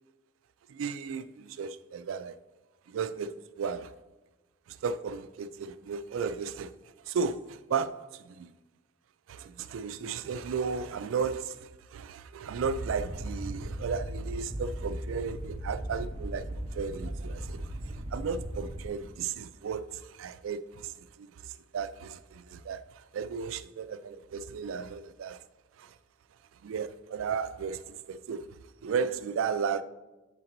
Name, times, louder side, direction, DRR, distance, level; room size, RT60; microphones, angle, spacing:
voice 1, 0.7-2.4 2.9-4.0 4.7-6.7 7.0-8.5 9.3-25.4 25.8-26.0 26.6-29.8, right 6 dB, 90° right, 0.3 m, -35 dB
sound 1, 12.6-18.9, right 1 dB, 30° right, 0.6 m, -37 dB
7.4 x 3.9 x 4.4 m
head